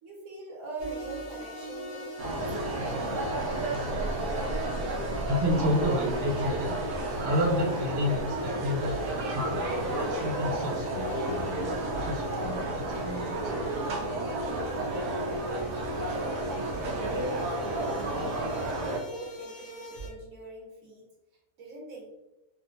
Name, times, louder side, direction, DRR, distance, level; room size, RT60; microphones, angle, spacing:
voice 1, 0.0-3.7 15.1-16.0 17.1-18.0 18.5-21.0 21.6-22.1, right 2 dB, 70° right, -2 dB, 1.1 m, -43 dB
sound 1, 0.8-20.1, equal, 45° left, 0.5 m, -41 dB
sound 2, 2.2-19.0, right 2 dB, 90° right, 1.2 m, -32 dB
voice 2, 5.2-6.8 7.2-9.6 9.9-13.8, left 1 dB, 50° right, -3 dB, 1.0 m, -30 dB
3.6 x 2.6 x 2.6 m, 0.98 s
omnidirectional pair, 1.5 m